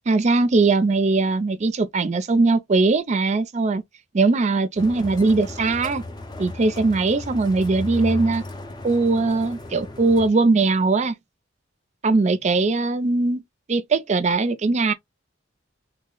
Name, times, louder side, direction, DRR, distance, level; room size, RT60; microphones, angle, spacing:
voice 1, 0.1-3.8 4.1-6.0 6.4-8.4 8.8-11.1 12.0-13.4 13.7-14.9, right 3 dB, 35° right, 0.4 m, -20 dB
sound 1, 4.8-10.3, left 2 dB, 20° left, 0.5 m, -35 dB
3.0 x 2.0 x 3.7 m
head